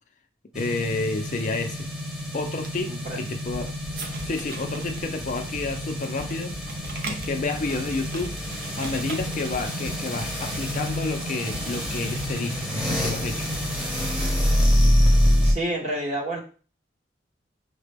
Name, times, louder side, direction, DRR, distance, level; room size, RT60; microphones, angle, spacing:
voice 1, 0.5-1.9 2.3-3.7 4.2-6.5 7.1-8.3 8.8-13.5, left 3 dB, 45° left, 6 dB, 0.4 m, -30 dB
sound 1, 0.5-15.5, equal, 5° right, 0.9 m, -26 dB
sound 2, 2.5-9.6, right 3 dB, 55° right, 0.7 m, -41 dB
voice 2, 2.9-3.4 15.4-16.4, right 1 dB, 40° right, -2 dB, 1.2 m, -29 dB
sound 3, 3.5-4.4 4.9-14.1, left 1 dB, 80° right, 1.8 m, -41 dB
5.7 x 2.2 x 3.4 m, 0.38 s
head